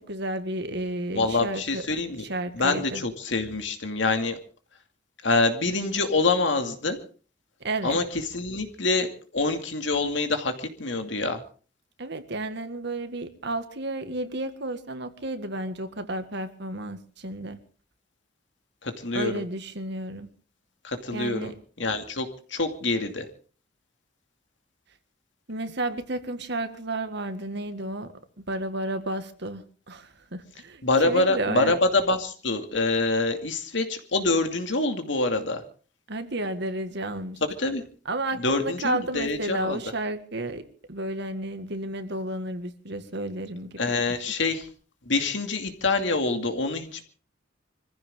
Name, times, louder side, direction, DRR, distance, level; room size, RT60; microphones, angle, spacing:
voice 1, 0.0-1.8 2.2-3.0 7.6-8.0 12.0-17.6 19.1-20.3 21.1-21.5 25.5-31.8 36.1-37.4 38.1-44.2, right 1 dB, 65° right, 9 dB, 1.9 m, -32 dB
voice 2, 1.1-2.2 2.5-4.4 5.2-7.0 7.8-8.0 8.3-11.4 18.8-19.4 20.8-21.5 21.8-23.3 30.8-35.6 37.6-37.8 38.3-39.8 43.8-44.7 45.1-47.0, left 3 dB, 70° left, 6 dB, 2.5 m, -26 dB
25.0 x 15.0 x 3.7 m, 0.39 s
head